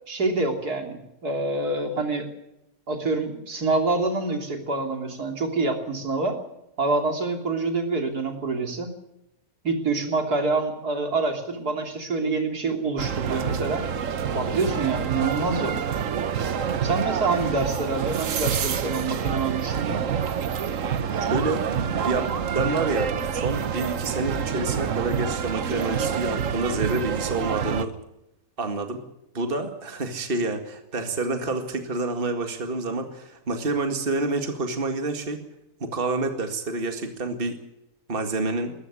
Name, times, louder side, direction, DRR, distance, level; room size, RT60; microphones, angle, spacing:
voice 1, 0.1-2.3 2.9-6.4 6.8-8.9 9.6-13.9 14.3-15.8 16.4-16.5 16.8-20.0, right 3 dB, 75° right, 4 dB, 3.7 m, -26 dB
sound 1, 13.0-27.8, right 7 dB, 55° right, 1.4 m, -27 dB
voice 2, 21.2-27.9 28.6-29.0 29.3-35.4 35.8-37.6 38.1-38.7, right 3 dB, 35° right, 6 dB, 2.2 m, -28 dB
21.0 x 15.0 x 9.8 m, 0.84 s
omnidirectional pair, 1.7 m